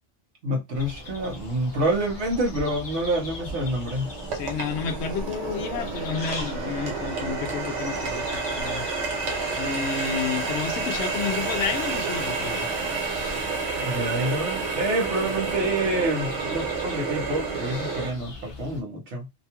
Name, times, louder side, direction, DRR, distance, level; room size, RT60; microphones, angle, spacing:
voice 1, 0.4-4.1 13.7-19.3, right 1 dB, 70° right, 1.1 m, -27 dB
sound 1, 0.7-18.8, left 1 dB, 45° left, 0.4 m, -40 dB
Water tap faucet, 1.6-1.7 2.3-18.1, right 4 dB, 90° right, 1.1 m, -30 dB
voice 2, 4.3-8.8 9.6-12.7, left 6 dB, 75° left, 0.8 m, -31 dB
2.8 x 2.3 x 2.8 m
omnidirectional pair, 1.2 m